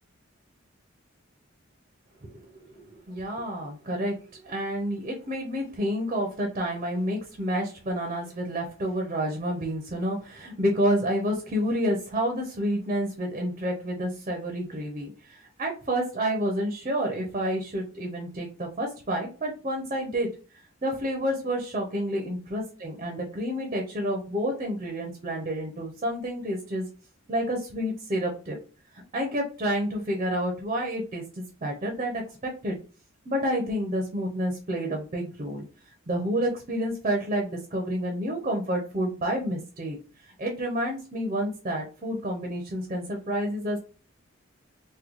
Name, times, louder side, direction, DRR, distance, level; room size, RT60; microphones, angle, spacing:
voice 1, 2.2-20.3 20.8-26.8 27.3-28.6 29.1-32.8 33.3-35.6 36.1-40.0 40.4-43.8, equal, 35° right, 2 dB, 0.6 m, -29 dB
3.7 x 2.2 x 3.0 m, 0.36 s
head